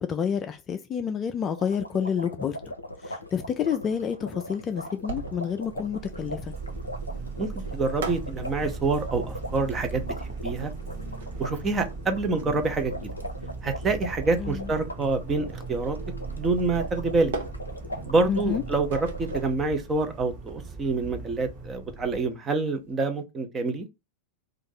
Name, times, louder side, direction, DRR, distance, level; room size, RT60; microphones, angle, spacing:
voice 1, 0.0-2.6 3.0-6.5 14.4-14.7 18.3-18.6, left 7 dB, 25° left, 0.3 m, -29 dB
sound 1, 1.6-19.4, equal, 85° left, 0.5 m, -40 dB
sound 2, 4.7-23.0, right 4 dB, 60° right, 0.9 m, -43 dB
sound 3, 5.6-22.2, right 4 dB, 35° right, 1.4 m, -38 dB
voice 2, 7.4-10.7 11.4-12.9 13.6-16.0 16.4-17.3 18.0-23.9, right 3 dB, 20° right, 0.8 m, -27 dB
2.6 x 2.4 x 3.8 m
figure-of-eight pair, 90°, 0 cm